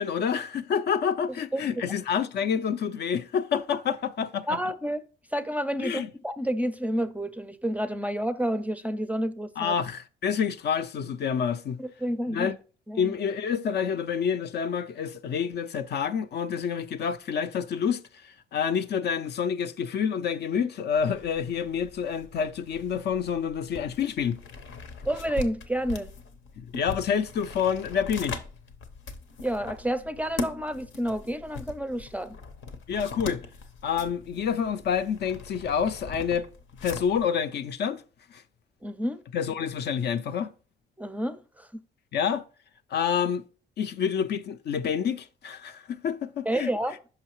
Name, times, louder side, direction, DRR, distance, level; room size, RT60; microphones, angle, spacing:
voice 1, 0.0-4.7 5.8-6.1 9.6-11.8 12.3-12.6 13.0-24.4 26.6-28.4 32.9-33.4 33.8-36.5 36.8-38.0 38.3-38.4 39.3-40.5 42.1-42.4 42.9-43.4 43.8-47.0, left 7 dB, 55° left, 0.4 m, -28 dB
voice 2, 4.5-5.0 5.3-9.8 11.8-12.5 12.9-13.1 25.0-26.1 29.4-32.4 38.8-39.2 41.0-41.8 46.5-47.0, right 1 dB, 5° right, 0.4 m, -30 dB
sound 1, 21.0-37.3, left 3 dB, 85° left, 0.8 m, -41 dB
5.6 x 5.5 x 3.0 m
cardioid pair, 90°, 20 cm